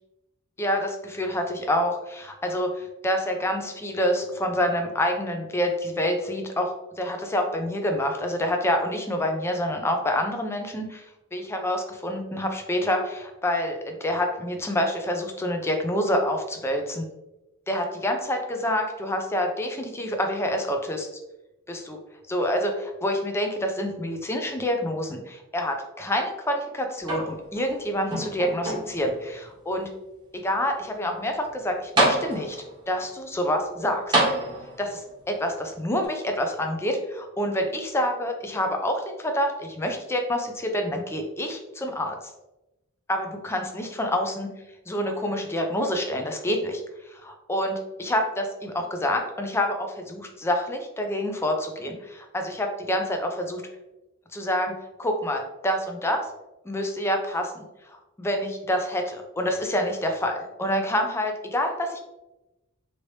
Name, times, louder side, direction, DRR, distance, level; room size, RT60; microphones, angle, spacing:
voice 1, 0.6-11.0 11.3-17.0 17.7-21.1 21.7-22.0 22.3-29.9 30.3-32.6 32.9-34.2 34.8-42.2 43.1-44.5 44.9-46.8 47.1-53.6 54.3-54.7 55.0-56.3 56.7-57.5 57.9-62.0, equal, 10° left, 4 dB, 0.4 m, -27 dB
sound 1, 27.0-27.7 28.1-29.1 29.8-29.9 31.5-31.6 32.0-32.7 34.1-35.0 36.0-36.1, right 2 dB, 20° right, 0.8 m, -26 dB
2.9 x 2.8 x 3.1 m, 0.97 s
head